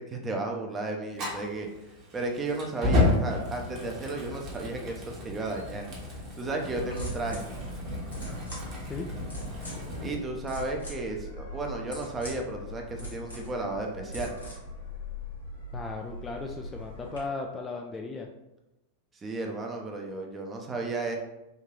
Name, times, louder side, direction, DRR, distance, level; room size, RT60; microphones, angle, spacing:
voice 1, 0.0-1.7 2.1-5.8 6.3-7.5 10.0-14.3 19.1-21.2, right 2 dB, 20° right, 2 dB, 0.6 m, -33 dB
Fire, 1.1-10.1, left 2 dB, 35° right, 1.1 m, -32 dB
sound 1, 6.8-17.2, left 1 dB, 80° left, 1.4 m, -41 dB
voice 2, 15.7-18.3, left 3 dB, 15° left, 2 dB, 0.3 m, -36 dB
3.7 x 2.7 x 3.1 m, 0.96 s
figure-of-eight pair, 90°, 0 cm